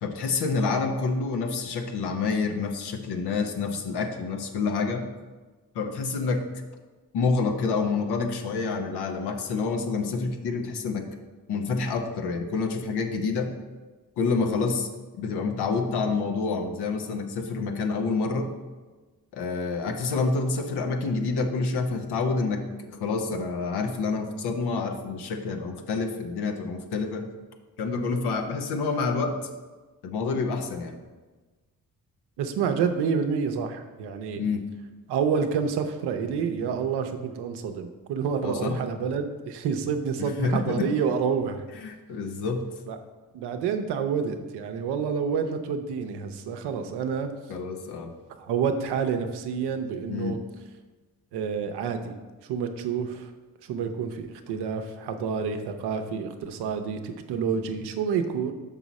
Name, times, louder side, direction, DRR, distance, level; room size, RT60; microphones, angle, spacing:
voice 1, 0.0-5.0 5.7-6.4 7.1-11.1 11.5-13.5 14.2-14.9 15.2-18.5 19.3-27.3 27.8-29.4 30.0-31.0 34.4-34.7 38.4-38.8 40.2-41.0 41.8-42.7 47.5-48.1 50.1-50.4, left 4 dB, 85° left, 5 dB, 0.9 m, -28 dB
voice 2, 32.4-34.4 35.1-41.6 42.9-43.0 43.3-47.3 48.4-50.4 51.3-52.2 52.5-53.3 53.6-58.5, right 6 dB, 85° right, 7 dB, 0.7 m, -28 dB
6.2 x 5.5 x 4.1 m, 1.3 s
supercardioid pair, 50°, 39 cm